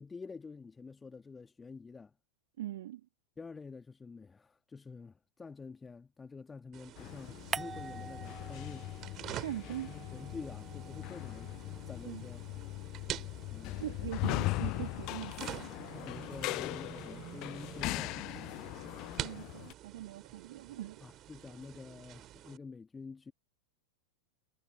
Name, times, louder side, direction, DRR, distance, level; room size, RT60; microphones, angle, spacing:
voice 1, 0.0-2.1 3.4-11.5 11.9-12.4 13.5-14.2 15.9-18.2 21.0-23.3, left 4 dB, 15° left, 2.0 m, -48 dB
voice 2, 2.6-3.0 9.4-9.9 12.1-12.2 13.7-15.7 19.2-21.0, right 14 dB, 55° right, 2.7 m, -41 dB
sound 1, 6.7-22.6, right 13 dB, 30° right, 4.5 m, -47 dB
sound 2, 7.0-19.7, left 21 dB, 40° left, 0.5 m, -40 dB
sound 3, 7.5-9.2 9.5-12.0, right 5 dB, 15° right, 0.9 m, -45 dB
figure-of-eight pair, 90°, 0 cm